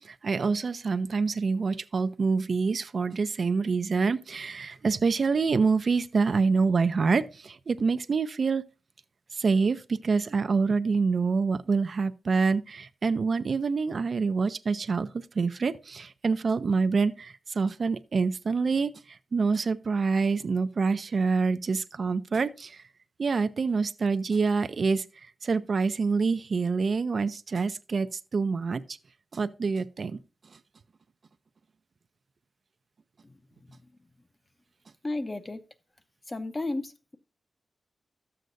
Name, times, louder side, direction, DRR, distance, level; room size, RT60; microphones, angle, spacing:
voice 1, 0.0-8.6 9.3-22.8 23.2-25.1 25.4-29.0 29.3-30.2, right 4 dB, 55° right, 0.4 m, -26 dB
voice 2, 35.0-35.6 36.3-37.2, left 2 dB, 25° left, 0.7 m, -33 dB
13.0 x 7.7 x 2.6 m
wide cardioid pair, 120°, 0 cm